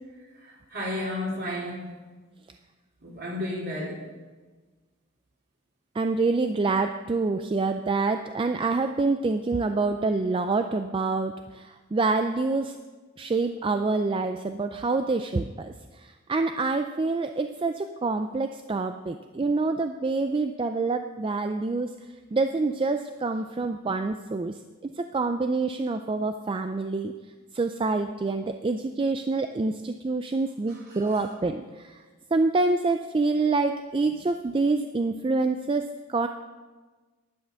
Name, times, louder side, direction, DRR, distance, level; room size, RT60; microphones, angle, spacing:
voice 1, 0.3-1.9 3.0-4.0 30.7-31.3 34.0-34.1, left 1 dB, 50° right, -4 dB, 3.6 m, -33 dB
voice 2, 5.9-12.8 13.2-21.9 22.3-27.1 27.5-32.0 32.3-36.3, right 3 dB, 25° right, 7 dB, 0.3 m, -26 dB
11.0 x 9.0 x 5.7 m, 1.3 s
head